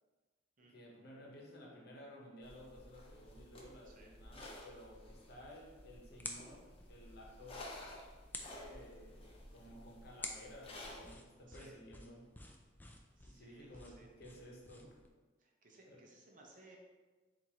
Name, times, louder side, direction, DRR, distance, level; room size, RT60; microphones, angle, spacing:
voice 1, 0.6-7.9 8.5-12.3 13.2-15.0 15.9-16.0, equal, 60° left, -2 dB, 0.9 m, -55 dB
sound 1, 2.4-11.1, left 1 dB, 30° left, 0.7 m, -53 dB
sound 2, 5.1-15.1, left 2 dB, 10° left, 0.3 m, -53 dB
voice 2, 13.1-14.1 15.4-16.8, right 2 dB, 45° right, 0 dB, 0.7 m, -61 dB
4.5 x 2.6 x 4.2 m, 1.3 s
head